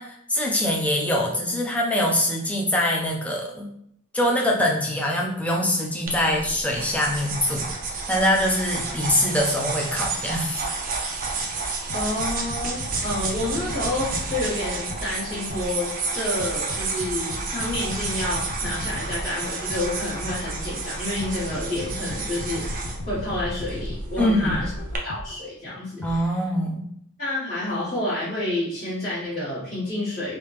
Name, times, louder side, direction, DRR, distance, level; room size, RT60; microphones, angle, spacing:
voice 1, 0.0-3.7 4.1-10.7 24.2-24.6 26.0-26.9, left 1 dB, 5° left, -1 dB, 0.6 m, -24 dB
sound 1, 6.1-25.0, right 3 dB, 40° right, 0.6 m, -31 dB
sound 2, 11.9-15.9 16.4-20.6 21.2-25.4 26.0-26.1, left 2 dB, 70° left, 0.5 m, -37 dB
voice 2, 11.9-24.7 25.0-26.2 27.2-30.4, left 1 dB, 40° left, -12 dB, 1.5 m, -29 dB
3.4 x 2.8 x 3.2 m, 0.69 s
head